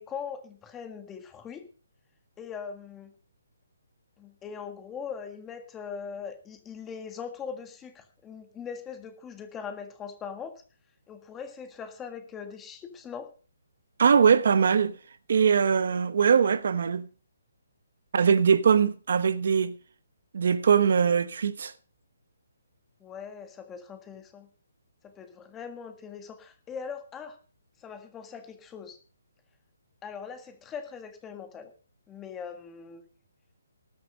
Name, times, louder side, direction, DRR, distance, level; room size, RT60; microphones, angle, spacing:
voice 1, 0.0-1.6 2.4-3.1 4.2-10.6 11.1-13.3 23.0-24.5 25.0-27.4 27.8-29.0 30.0-31.7 32.1-33.0, left 6 dB, 10° left, 1.6 m, -41 dB
voice 2, 14.0-14.9 15.3-17.0 18.1-19.8 20.3-21.7, right 6 dB, 55° right, 0.9 m, -21 dB
18.5 x 6.7 x 5.1 m
hypercardioid pair, 165°, 0 cm